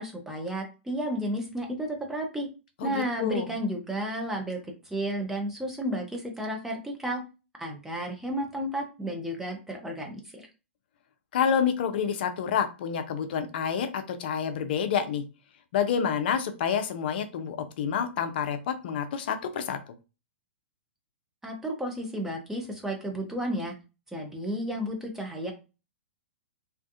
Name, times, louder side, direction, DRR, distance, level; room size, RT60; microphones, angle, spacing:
voice 1, 0.0-2.5 2.8-4.6 4.8-7.2 7.6-10.5 21.4-23.7 24.1-25.5, equal, 5° right, 1 dB, 0.6 m, -32 dB
voice 2, 2.8-3.5 11.3-15.2 15.7-19.8, left 7 dB, 55° left, 8 dB, 0.4 m, -28 dB
2.4 x 2.3 x 2.5 m, 0.30 s
figure-of-eight pair, 115°, 7 cm